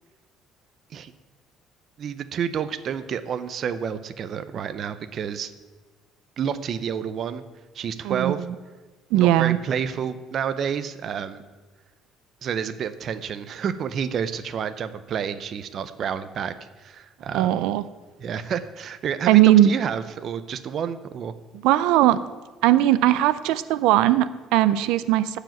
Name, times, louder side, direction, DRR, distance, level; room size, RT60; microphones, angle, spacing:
voice 1, 2.0-5.5 6.4-7.4 7.7-8.4 9.1-11.4 12.4-16.5 16.8-17.6 18.2-21.3, right 7 dB, 40° right, 12 dB, 0.6 m, -29 dB
voice 2, 8.0-8.4 9.1-9.6 17.3-17.9 19.3-19.7 21.6-22.2 22.6-25.4, right 13 dB, 90° right, 15 dB, 0.5 m, -19 dB
15.0 x 5.0 x 9.1 m, 1.3 s
cardioid pair, 175°, 0 cm